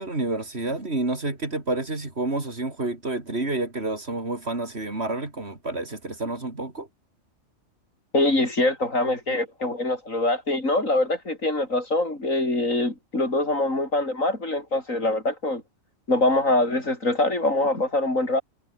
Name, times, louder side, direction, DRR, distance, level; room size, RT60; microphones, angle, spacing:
voice 1, 0.0-6.9, right 2 dB, 50° right, 3.9 m, -29 dB
voice 2, 8.1-15.6 16.1-18.4, left 2 dB, 75° left, 6.5 m, -24 dB
omnidirectional pair, 1.4 m